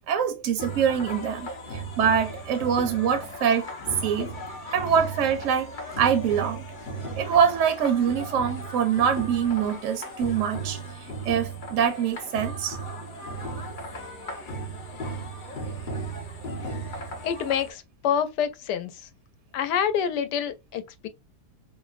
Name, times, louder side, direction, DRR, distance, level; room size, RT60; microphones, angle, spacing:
voice 1, 0.1-3.7 4.0-4.3 4.7-5.7 6.0-6.6 7.1-10.8 11.2-12.8 13.6-13.7, right 7 dB, 65° right, 0.8 m, -24 dB
sound 1, 0.6-17.7, right 2 dB, 45° left, 0.6 m, -36 dB
voice 2, 17.2-19.1 19.5-21.1, left 8 dB, 90° left, 1.2 m, -27 dB
4.9 x 2.0 x 2.3 m
omnidirectional pair, 1.8 m